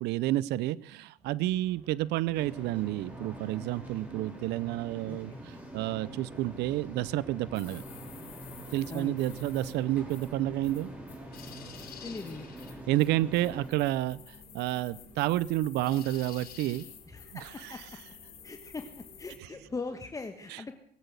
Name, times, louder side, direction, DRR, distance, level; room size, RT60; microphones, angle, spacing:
voice 1, 0.0-7.8 8.7-10.9 12.9-16.9 17.3-17.9 19.4-19.5 20.5-20.6, right 15 dB, 85° right, 18 dB, 0.5 m, -30 dB
sound 1, 1.2-19.9, right 2 dB, 40° right, 5.5 m, -58 dB
sound 2, 2.3-13.7, right 1 dB, 10° right, 5.1 m, -45 dB
voice 2, 5.1-5.4 8.9-9.2 12.0-12.5 17.1-17.8 18.4-18.9 19.2-20.8, left 3 dB, 20° left, 6 dB, 1.3 m, -40 dB
sound 3, 7.5-19.4, left 9 dB, 60° left, 3.8 m, -51 dB
21.0 x 8.3 x 8.0 m, 0.69 s
cardioid pair, 110°, 17 cm